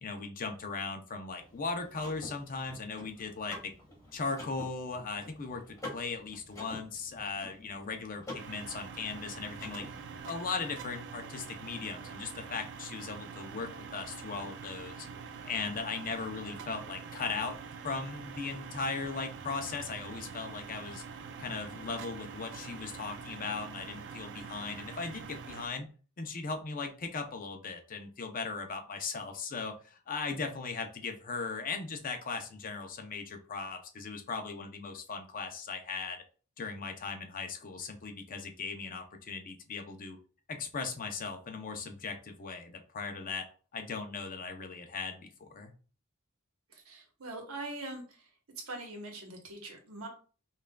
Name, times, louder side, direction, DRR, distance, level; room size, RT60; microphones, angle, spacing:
voice 1, 0.0-3.7 4.1-9.8 10.2-15.1 15.4-17.6 17.8-21.0 21.4-25.9 26.2-36.2 36.6-40.2 40.5-43.5 43.7-45.7, left 4 dB, 40° left, 5 dB, 0.6 m, -38 dB
Car / Mechanisms, 1.3-10.2, left 1 dB, 15° left, 1.7 m, -49 dB
sound 1, 8.4-25.7, right 6 dB, 55° right, 0.4 m, -45 dB
voice 2, 46.7-48.3 48.6-50.1, right 2 dB, 75° right, 2 dB, 1.0 m, -42 dB
5.4 x 2.4 x 2.2 m, 0.38 s
head